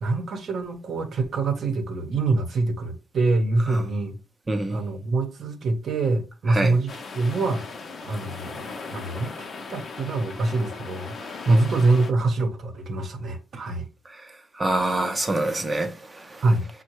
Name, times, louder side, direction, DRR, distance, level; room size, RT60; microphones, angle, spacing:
voice 1, 0.0-4.2 4.7-7.7 8.0-9.3 9.7-13.9 16.4-16.7, right 3 dB, 55° right, 0.8 m, -25 dB
voice 2, 4.5-4.8 6.5-6.7 11.5-11.6 14.1-16.4, right 2 dB, 20° right, 0.6 m, -26 dB
sound 1, 6.9-12.1, left 4 dB, 45° left, 0.6 m, -38 dB
5.4 x 2.2 x 3.0 m
cardioid pair, 110°, 0 cm